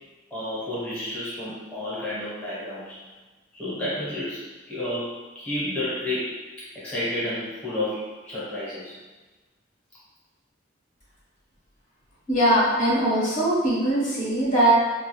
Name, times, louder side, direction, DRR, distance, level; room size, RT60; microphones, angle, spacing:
voice 1, 0.3-3.0 3.5-6.4 6.7-9.0, left 1 dB, 5° left, -10 dB, 0.9 m, -31 dB
voice 2, 12.3-14.7, right 1 dB, 45° left, -7 dB, 0.8 m, -21 dB
2.3 x 2.3 x 2.9 m, 1.3 s
head